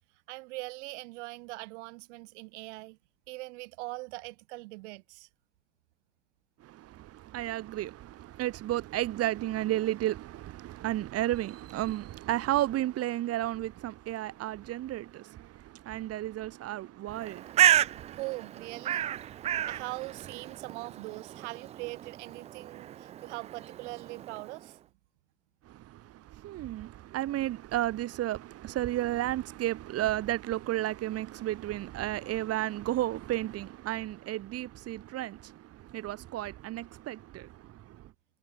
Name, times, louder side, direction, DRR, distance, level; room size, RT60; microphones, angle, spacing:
voice 1, 0.3-3.0 3.3-5.3 18.2-19.1 19.7-24.8, right 24 dB, 60° right, 3.9 m, -41 dB
voice 2, 6.6-18.2 19.3-19.7 25.7-38.1, right 14 dB, 40° right, 3.3 m, -33 dB
Bird, 17.1-24.7, right 11 dB, 20° right, 0.4 m, -31 dB
hypercardioid pair, 110°, 39 cm